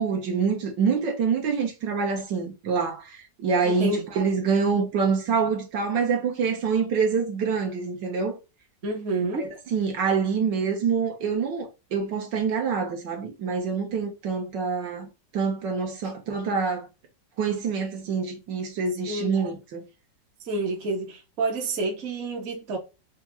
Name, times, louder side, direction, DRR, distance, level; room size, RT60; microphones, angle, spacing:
voice 1, 0.0-8.4 9.4-15.1 15.3-16.9 17.4-19.8, right 5 dB, 75° right, 1.7 m, -26 dB
voice 2, 3.6-4.0 8.8-9.5 19.1-19.4 20.4-22.8, right 2 dB, 45° right, 1.2 m, -29 dB
4.3 x 2.4 x 2.9 m
omnidirectional pair, 1.9 m